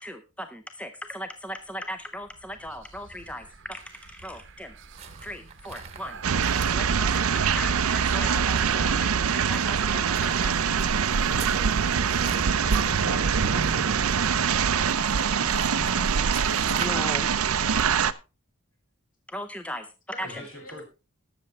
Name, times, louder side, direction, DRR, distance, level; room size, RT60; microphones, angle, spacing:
voice 1, 0.0-4.7 5.2-6.2 6.7-10.6 16.8-17.3 19.3-20.5, equal, 5° left, 8 dB, 0.6 m, -38 dB
sound 1, 2.3-16.2, right 3 dB, 60° right, 0.9 m, -40 dB
voice 2, 3.2-3.5 11.3-12.1 17.4-18.0 20.1-20.8, left 2 dB, 40° left, 1 dB, 3.1 m, -45 dB
sound 2, 4.9-17.1, right 6 dB, 30° right, 1.1 m, -43 dB
sound 3, 6.2-18.1, right 7 dB, 85° right, 0.6 m, -24 dB
voice 3, 13.0-13.3 15.0-16.4 20.2-20.8, equal, 75° left, 0 dB, 5.8 m, -42 dB
19.5 x 6.9 x 3.2 m, 0.29 s
head